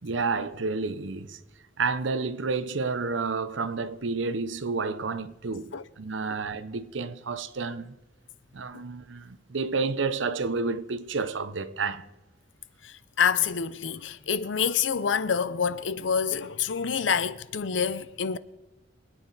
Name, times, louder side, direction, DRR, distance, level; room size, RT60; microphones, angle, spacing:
voice 1, 0.0-1.4 1.8-8.0 8.5-12.1, right 4 dB, 80° right, 0.8 m, -30 dB
voice 2, 12.8-18.4, left 7 dB, 75° left, 0.6 m, -27 dB
24.0 x 9.2 x 4.0 m
head